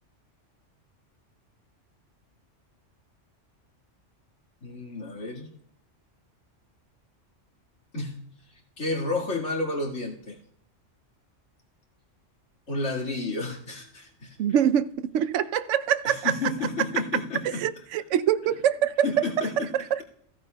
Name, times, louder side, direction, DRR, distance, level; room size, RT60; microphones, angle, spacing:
voice 1, 4.6-5.5 7.9-8.2 8.8-10.4 12.7-14.4 16.0-17.6 19.0-19.7, left 3 dB, 75° left, 2.3 m, -31 dB
voice 2, 14.4-16.3 17.6-19.1 19.7-20.0, right 9 dB, 80° right, 0.9 m, -24 dB
15.0 x 13.5 x 2.2 m
omnidirectional pair, 1.3 m